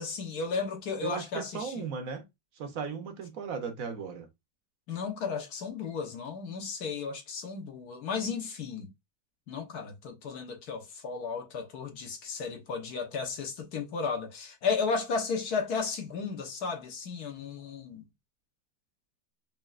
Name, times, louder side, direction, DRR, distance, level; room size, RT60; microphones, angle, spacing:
voice 1, 0.0-1.8 4.9-8.9 9.5-18.0, left 5 dB, 65° left, 1.4 m, -34 dB
voice 2, 1.0-2.3 2.6-4.3, right 6 dB, 60° right, 1.0 m, -36 dB
5.3 x 2.7 x 2.4 m
omnidirectional pair, 1.9 m